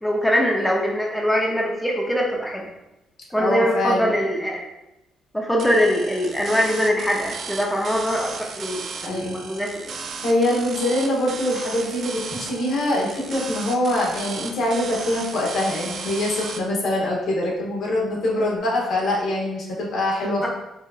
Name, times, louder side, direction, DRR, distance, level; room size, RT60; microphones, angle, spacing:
voice 1, 0.0-2.7 3.3-4.6 5.3-9.7 20.4-20.5, equal, 5° left, -2 dB, 0.6 m, -22 dB
voice 2, 3.4-4.1 9.0-9.4 10.2-20.5, left 1 dB, 70° left, -3 dB, 1.1 m, -24 dB
sound 1, 5.6-16.6, right 5 dB, 60° right, 0.4 m, -35 dB
4.7 x 2.6 x 2.4 m, 0.92 s
cardioid pair, 90°, 0 cm